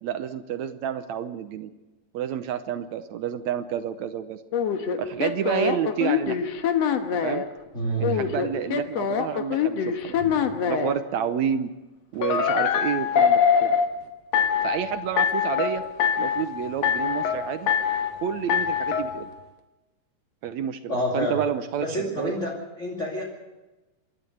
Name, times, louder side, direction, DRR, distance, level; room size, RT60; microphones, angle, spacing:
voice 1, 0.0-1.7 2.1-4.4 5.0-6.5 7.1-7.5 8.0-10.2 10.7-11.7 12.1-13.8 14.6-15.8 16.2-17.7 18.2-19.3 20.4-22.3, right 9 dB, 75° right, 10 dB, 2.0 m, -29 dB
sound 1, 4.5-7.5 8.0-11.0 12.2-13.9 14.3-14.8 15.2-15.7 16.0-16.5 16.8-17.4 17.7-18.1 18.5-19.0, left 7 dB, 60° left, 2.2 m, -23 dB
voice 2, 7.7-8.3 10.2-10.5 20.9-21.4 21.8-22.5 22.8-23.2, equal, 25° left, -2 dB, 2.7 m, -28 dB
27.5 x 12.0 x 7.9 m, 1.1 s
omnidirectional pair, 3.6 m